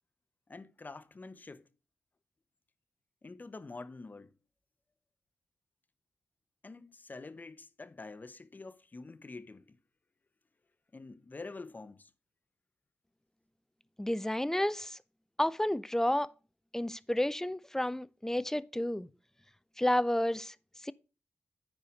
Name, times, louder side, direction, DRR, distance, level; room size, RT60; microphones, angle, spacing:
voice 1, 0.5-1.7 3.2-4.3 6.6-9.8 10.9-12.1, left 3 dB, 35° left, 0.9 m, -47 dB
voice 2, 14.0-15.0 15.4-16.3 16.7-19.1 19.8-20.5 20.8-20.9, left 1 dB, 10° left, 0.5 m, -31 dB
9.4 x 4.8 x 5.0 m
supercardioid pair, 40°, 5 cm